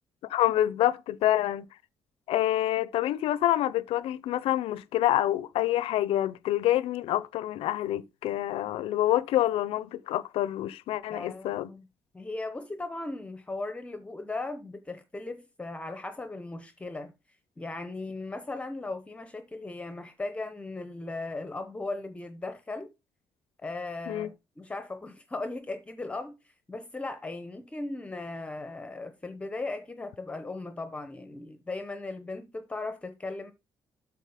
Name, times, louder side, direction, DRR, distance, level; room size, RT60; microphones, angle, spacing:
voice 1, 0.3-1.7 2.3-11.7 24.1-24.3, left 13 dB, 85° left, 0.6 m, -27 dB
voice 2, 11.1-11.9 12.1-17.1 17.6-22.9 23.6-33.5, left 2 dB, 15° left, 0.8 m, -37 dB
8.3 x 4.1 x 5.8 m
cardioid pair, 165°, 10 cm